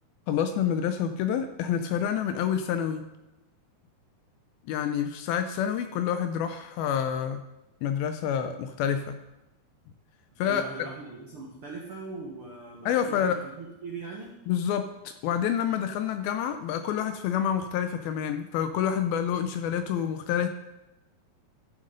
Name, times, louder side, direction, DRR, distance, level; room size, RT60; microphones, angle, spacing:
voice 1, 0.3-3.1 4.7-7.4 7.8-9.2 10.4-10.9 12.9-13.4 14.5-14.9 15.2-20.5, left 9 dB, 80° left, 8 dB, 2.3 m, -28 dB
voice 2, 10.4-14.3, right 3 dB, 90° right, -1 dB, 1.2 m, -40 dB
12.0 x 7.0 x 5.2 m, 0.97 s
omnidirectional pair, 4.7 m